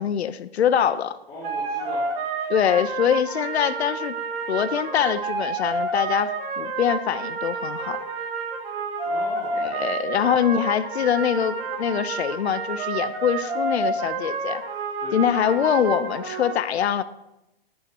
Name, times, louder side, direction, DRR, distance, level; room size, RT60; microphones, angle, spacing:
voice 1, 0.0-1.2 2.5-4.1 4.5-8.0 9.5-14.6 15.1-17.0, left 9 dB, 85° left, 14 dB, 1.0 m, -24 dB
voice 2, 1.3-2.0 9.0-10.2 15.0-15.6, left 1 dB, 20° left, -8 dB, 4.6 m, -39 dB
sound 1, 1.4-16.5, right 3 dB, 65° right, 3.3 m, -29 dB
19.0 x 13.0 x 3.0 m, 0.92 s
hypercardioid pair, 150°, 31 cm